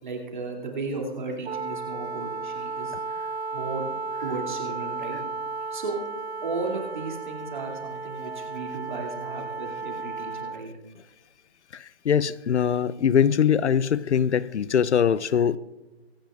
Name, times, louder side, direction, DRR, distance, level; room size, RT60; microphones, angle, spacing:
voice 1, 0.0-2.9 3.5-3.9 4.2-5.2 5.7-6.0 6.4-10.7, right 3 dB, 45° right, 2.6 m, -34 dB
Wind instrument woodwind instrument, 1.4-10.6, right 4 dB, 65° right, 0.7 m, -34 dB
voice 2, 11.7-15.6, left 8 dB, 80° left, 0.6 m, -22 dB
24.0 x 10.0 x 2.4 m
hypercardioid pair, 175°, 34 cm